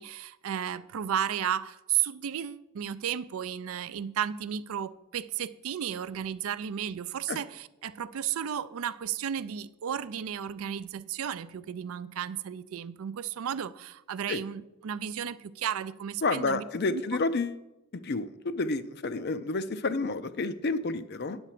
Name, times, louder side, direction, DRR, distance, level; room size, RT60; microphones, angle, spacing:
voice 1, 0.0-16.6 16.9-17.0, right 9 dB, 75° right, 0.4 m, -33 dB
voice 2, 16.2-17.6 17.9-21.4, left 3 dB, 50° left, 0.5 m, -30 dB
9.9 x 4.3 x 7.5 m
head